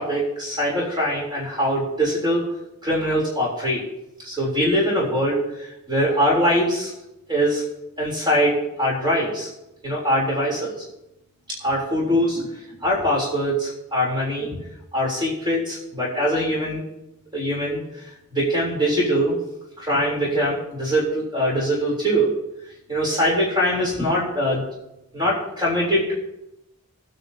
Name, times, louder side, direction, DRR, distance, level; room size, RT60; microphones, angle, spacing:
voice 1, 0.0-2.5 2.8-3.8 4.2-6.9 7.3-7.6 8.0-9.5 9.8-10.8 11.5-12.5 12.8-14.7 14.9-16.8 17.3-19.4 19.8-22.3 22.9-24.6 25.1-26.1, equal, 20° right, -5 dB, 3.5 m, -22 dB
23.0 x 9.2 x 2.8 m, 0.90 s
head